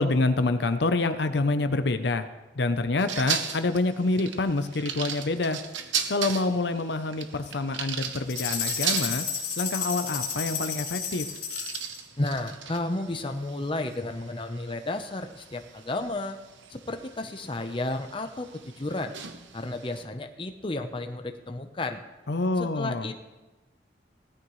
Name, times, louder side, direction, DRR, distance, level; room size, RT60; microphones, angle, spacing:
voice 1, 0.0-2.3 2.6-5.6 6.1-9.3 9.6-11.3 22.3-23.1, left 2 dB, 70° left, 9 dB, 0.7 m, -26 dB
sound 1, 3.0-20.0, right 8 dB, 90° right, 1.0 m, -37 dB
sound 2, 8.3-12.0, left 6 dB, 55° left, 4.0 m, -32 dB
voice 2, 12.2-16.4 16.7-19.1 19.5-22.0 22.6-23.1, left 2 dB, 30° left, 6 dB, 0.8 m, -32 dB
17.0 x 13.5 x 3.2 m, 1.1 s
head